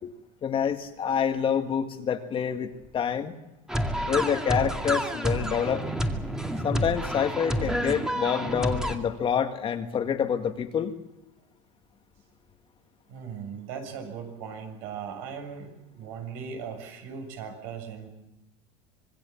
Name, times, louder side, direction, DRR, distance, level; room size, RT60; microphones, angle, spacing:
voice 1, 0.4-3.3 4.1-5.8 6.6-10.9, left 7 dB, 30° left, 6 dB, 2.0 m, -27 dB
sound 1, 3.7-9.0, equal, 5° right, 2.3 m, -29 dB
voice 2, 13.1-18.1, right 6 dB, 70° right, 5 dB, 7.1 m, -38 dB
26.0 x 21.0 x 7.2 m, 0.92 s
supercardioid pair, 115°, 17 cm